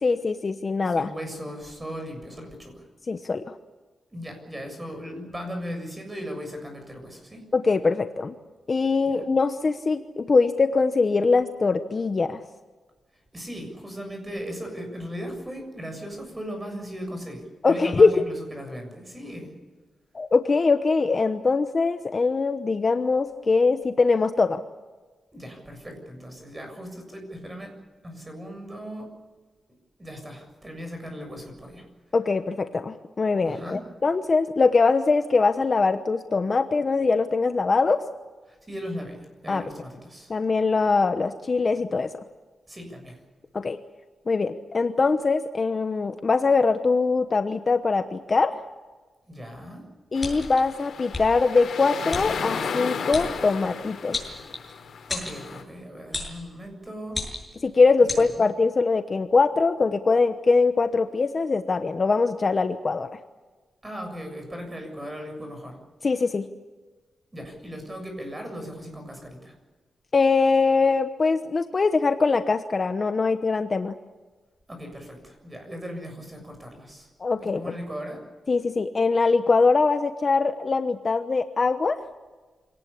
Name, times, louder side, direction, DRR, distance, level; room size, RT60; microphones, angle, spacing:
voice 1, 0.0-1.1 3.1-3.6 7.5-8.3 8.7-12.4 17.6-18.2 20.1-24.6 32.1-38.0 39.5-39.6 40.3-42.1 43.5-43.8 44.3-48.5 50.1-54.2 57.6-63.2 66.0-66.5 70.1-74.0 77.2-77.6 78.5-82.0, left 4 dB, 35° left, 8 dB, 1.0 m, -22 dB
voice 2, 0.8-2.9 4.1-7.5 9.0-9.2 13.3-19.5 25.3-27.7 28.0-29.1 30.0-31.9 33.4-33.8 38.5-40.3 42.7-43.2 49.3-49.8 55.1-57.2 58.0-58.5 63.8-65.8 67.3-69.5 74.7-77.1 77.4-78.2, equal, 15° right, 4 dB, 7.2 m, -37 dB
sound 1, 50.1-55.6, left 6 dB, 75° left, 3.8 m, -34 dB
sound 2, 50.2-50.6 51.1-51.3 52.1-52.2 53.1-53.3 54.1-54.7 55.1-55.4 56.1-56.4 57.1-57.6 58.1-58.2, left 3 dB, 15° left, 7.1 m, -31 dB
26.0 x 18.5 x 8.6 m, 1.3 s
wide cardioid pair, 145°, 0 cm